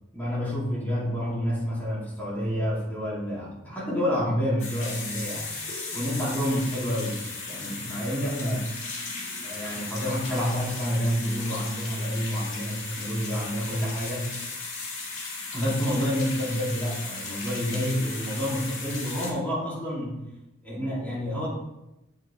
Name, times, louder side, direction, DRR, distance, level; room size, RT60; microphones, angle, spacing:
voice 1, 0.1-5.5 5.9-7.2 7.5-8.6 9.4-14.3 15.5-20.2 20.6-21.5, equal, 10° left, -8 dB, 2.5 m, -28 dB
sound 1, 4.6-19.3, left 3 dB, 80° left, 1.8 m, -36 dB
7.4 x 5.2 x 3.3 m, 0.92 s
head